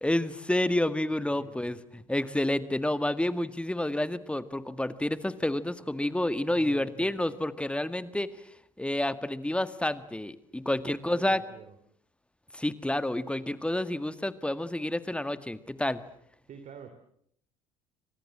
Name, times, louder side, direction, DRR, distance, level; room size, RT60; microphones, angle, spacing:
voice 1, 0.0-8.3 8.8-11.4 12.5-16.0, left 1 dB, 5° left, 14 dB, 1.8 m, -29 dB
voice 2, 1.3-1.8 6.5-7.3 10.8-11.8 16.5-16.9, right 7 dB, 45° right, 9 dB, 3.0 m, -48 dB
29.5 x 25.0 x 7.6 m, 0.69 s
figure-of-eight pair, 60°, 17 cm